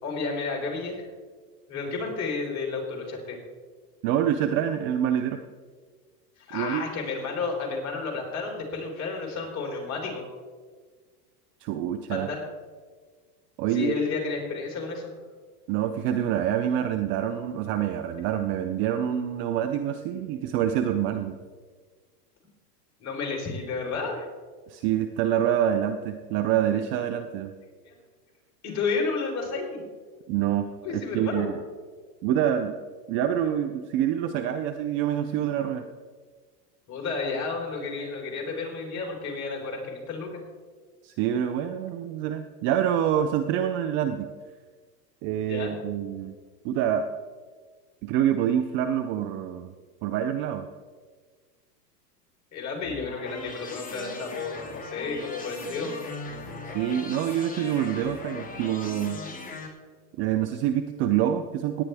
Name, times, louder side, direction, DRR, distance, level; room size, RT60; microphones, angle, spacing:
voice 1, 0.0-1.1 1.7-3.4 6.4-10.2 12.1-12.4 13.7-15.1 23.0-24.3 27.8-28.0 28.6-29.9 30.8-31.5 36.9-40.4 45.4-45.7 52.5-56.0, left 4 dB, 35° left, -1 dB, 3.9 m, -31 dB
voice 2, 4.0-5.4 6.5-6.8 11.6-12.3 13.6-13.9 15.7-21.4 24.7-27.5 30.3-31.5 32.2-32.7 33.1-35.8 41.0-44.3 45.2-46.4 46.6-47.1 48.0-49.7 50.0-50.7 56.7-59.2 60.2-61.8, right 10 dB, 30° right, 9 dB, 0.3 m, -26 dB
sound 1, 52.8-59.7, left 3 dB, 15° left, 2.0 m, -39 dB
17.5 x 9.7 x 3.4 m, 1.5 s
supercardioid pair, 125°, 48 cm